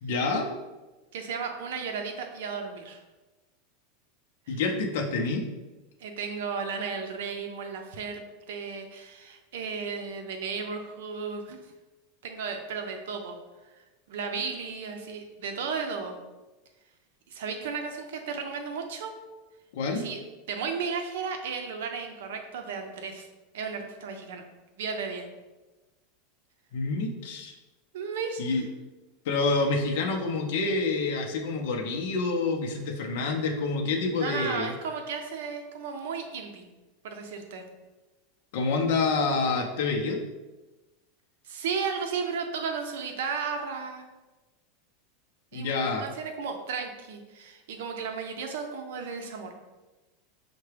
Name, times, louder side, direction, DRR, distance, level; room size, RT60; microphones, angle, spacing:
voice 1, 0.0-0.5 4.5-5.4 19.7-20.0 26.7-27.5 28.4-28.6 29.2-34.7 38.5-40.2 45.5-46.0, left 3 dB, 65° left, 1 dB, 0.6 m, -27 dB
voice 2, 1.1-3.0 4.5-4.6 6.0-8.2 8.5-11.6 12.2-13.4 14.1-16.2 17.3-19.1 19.9-20.2 20.5-23.3 23.5-24.4 24.8-25.3 27.9-28.6 34.1-36.7 37.0-37.6 41.4-44.1 45.5-49.5, right 5 dB, 80° right, 5 dB, 0.6 m, -34 dB
5.6 x 2.2 x 3.3 m, 1.1 s
supercardioid pair, 165°, 0 cm